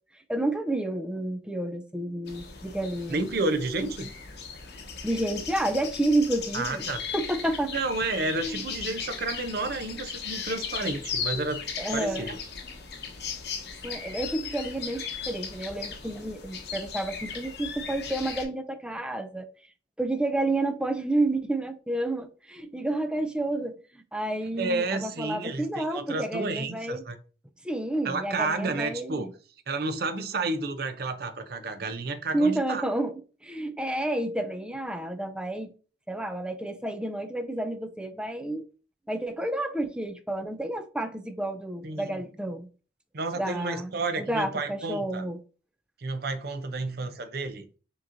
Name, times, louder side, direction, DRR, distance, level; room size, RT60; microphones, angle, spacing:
voice 1, 0.3-3.2 5.0-6.9 7.1-7.7 8.5-8.6 11.8-12.3 13.8-19.5 20.0-27.0 27.6-29.3 32.3-35.7 36.1-38.6 39.1-42.7 43.4-43.9 44.2-45.4, right 1 dB, 5° right, 0.4 m, -30 dB
sound 1, 2.3-18.4, left 6 dB, 60° left, 1.0 m, -37 dB
voice 2, 3.1-4.1 6.5-7.0 7.7-11.6 11.9-12.4 24.6-27.2 28.0-29.3 29.7-32.8 41.8-42.2 43.1-45.3 46.0-47.7, right 3 dB, 60° right, 0.6 m, -31 dB
6.2 x 3.0 x 2.6 m
head